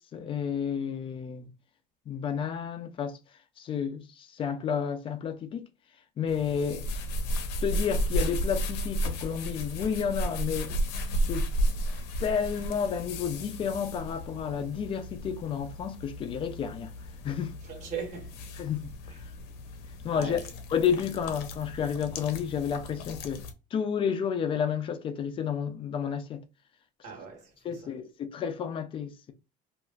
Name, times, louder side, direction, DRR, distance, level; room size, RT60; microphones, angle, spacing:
voice 1, 0.1-1.5 2.1-3.2 3.6-5.7 6.2-6.9 7.6-10.7 11.3-11.5 12.2-16.9 17.2-17.5 18.6-18.9 20.0-20.4 20.7-23.4 23.7-26.4 27.6-29.3, left 7 dB, 30° left, 0.4 m, -31 dB
sound 1, 6.3-23.5, equal, 85° left, 0.6 m, -34 dB
voice 2, 17.6-18.5 20.1-20.4 27.0-27.9, right 6 dB, 45° right, 1.1 m, -39 dB
2.9 x 2.5 x 2.2 m
cardioid pair, 160°, 17 cm